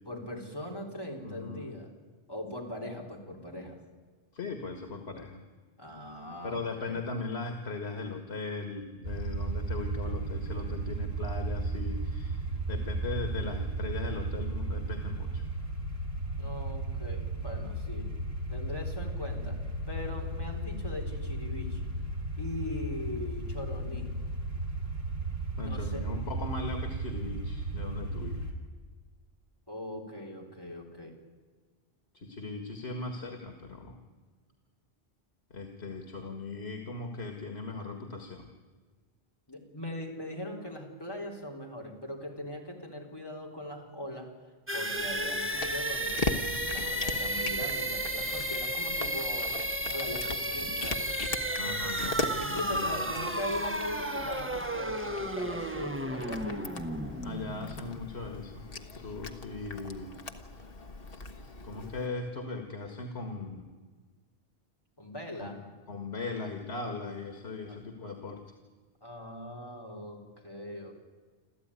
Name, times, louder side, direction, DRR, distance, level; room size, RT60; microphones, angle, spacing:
voice 1, 0.1-1.9 2.3-3.8 5.8-7.0 16.3-18.1 18.5-19.6 19.9-21.9 22.4-24.2 25.6-26.1 29.7-31.1 39.5-44.3 44.7-46.3 46.7-49.6 49.9-51.0 52.4-56.6 65.0-65.6 67.7-67.8 69.0-70.9, left 1 dB, 20° left, 0 dB, 3.7 m, -40 dB
voice 2, 1.2-1.7 4.3-5.4 6.4-15.5 25.6-28.5 32.1-34.0 35.5-38.5 51.6-53.0 57.2-58.7 58.9-60.2 61.6-63.7 65.4-68.4, left 3 dB, 90° left, 5 dB, 2.2 m, -38 dB
sound 1, 9.0-28.5, right 2 dB, 75° right, 4.2 m, -34 dB
sound 2, 44.7-58.4, right 1 dB, 10° right, 1.3 m, -33 dB
Cat, 45.0-62.1, left 3 dB, 60° left, 1.5 m, -40 dB
27.0 x 14.0 x 9.8 m, 1.5 s
omnidirectional pair, 1.1 m